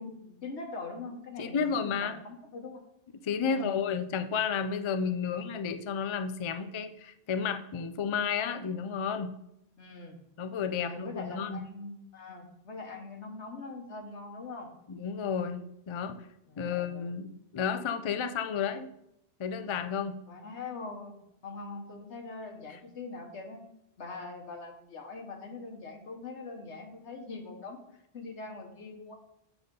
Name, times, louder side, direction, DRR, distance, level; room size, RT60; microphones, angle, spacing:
voice 1, 0.0-2.8 3.4-3.7 5.2-5.4 9.8-10.2 10.8-14.7 16.5-17.1 20.3-21.2 21.4-23.6 24.0-27.8 28.1-29.2, left 3 dB, 90° left, 3 dB, 1.5 m, -42 dB
voice 2, 1.4-2.2 3.2-9.3 10.4-11.6 14.9-16.2 16.6-18.9 19.4-20.2, left 6 dB, 50° left, 9 dB, 0.3 m, -32 dB
7.8 x 4.1 x 5.3 m, 0.82 s
omnidirectional pair, 1.1 m